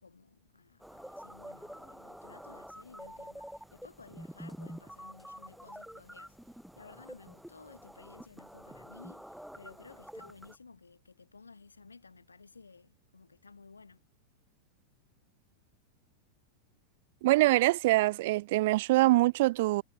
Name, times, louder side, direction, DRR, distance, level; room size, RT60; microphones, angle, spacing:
voice 1, 0.0-6.4 6.8-14.0, left 4 dB, 90° left, 5.8 m, -55 dB
sound 1, 0.8-10.6, equal, ahead, 1.9 m, -48 dB
voice 2, 17.2-19.8, right 19 dB, 60° right, 0.6 m, -24 dB
figure-of-eight pair, 90°, 0 cm